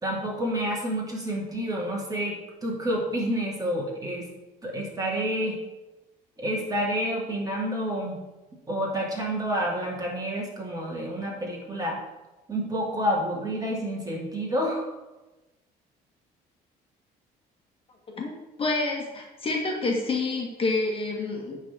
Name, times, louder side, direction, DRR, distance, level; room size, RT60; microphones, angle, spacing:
voice 1, 0.0-4.3 4.6-5.6 6.4-8.2 8.7-12.0 12.5-14.9, equal, 20° right, -2 dB, 2.6 m, -29 dB
voice 2, 18.1-21.6, left 3 dB, 30° left, 0 dB, 1.7 m, -28 dB
9.4 x 4.1 x 7.3 m, 1.1 s
cardioid pair, 110°, 17 cm